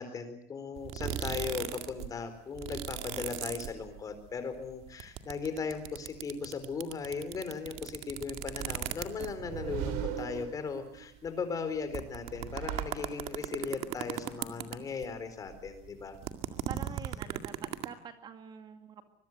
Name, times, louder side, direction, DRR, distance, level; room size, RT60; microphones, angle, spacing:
voice 1, 0.0-16.2, left 5 dB, 25° left, 10 dB, 4.4 m, -38 dB
sound 1, 0.8-2.1 2.3-4.3 4.5-9.6 10.2-10.3 10.4-10.5 11.2-11.3 11.7-15.2 15.5-17.9, right 12 dB, 55° right, 2.1 m, -37 dB
sound 2, 9.0-11.1 12.1-13.6, right 9 dB, 75° right, 4.1 m, -39 dB
voice 2, 16.7-19.0, right 7 dB, 35° right, 8 dB, 2.2 m, -46 dB
25.0 x 22.0 x 7.9 m, 0.67 s
cardioid pair, 145°, 13 cm